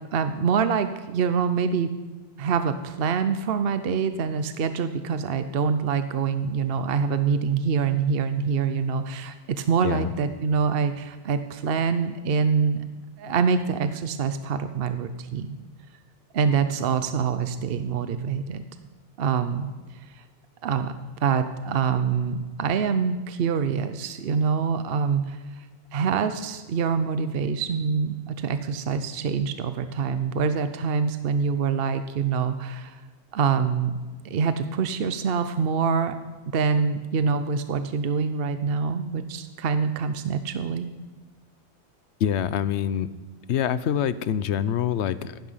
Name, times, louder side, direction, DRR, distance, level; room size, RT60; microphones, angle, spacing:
voice 1, 0.1-1.9 2.4-12.8 13.2-15.6 16.3-18.6 19.2-19.7 20.0-20.2 20.6-20.9 21.2-25.7 25.9-33.0 33.3-33.9 34.2-36.2 36.5-40.9, right 6 dB, 60° right, 10 dB, 0.9 m, -25 dB
voice 2, 42.2-43.1 43.5-45.4, left 9 dB, 85° left, 15 dB, 0.9 m, -25 dB
15.0 x 11.5 x 5.6 m, 1.3 s
omnidirectional pair, 1.1 m